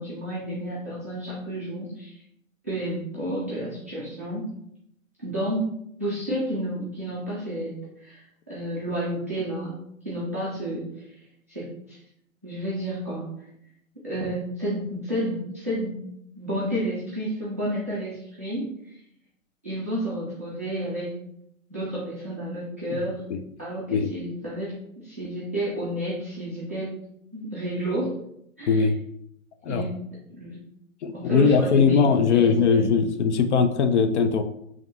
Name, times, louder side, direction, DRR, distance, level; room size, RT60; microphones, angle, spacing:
voice 1, 0.0-2.2 2.6-4.5 5.2-5.7 6.0-9.8 10.0-11.0 11.5-12.0 12.4-13.3 14.0-16.0 16.4-18.9 19.6-21.1 21.7-23.2 23.6-27.0 27.3-28.1 28.6-28.8 29.7-30.0 30.3-30.6 31.1-33.0, right 1 dB, 15° right, -10 dB, 0.3 m, -31 dB
voice 2, 31.0-34.4, left 5 dB, 55° left, 7 dB, 0.6 m, -20 dB
4.8 x 2.9 x 3.3 m, 0.73 s
hypercardioid pair, 140°, 41 cm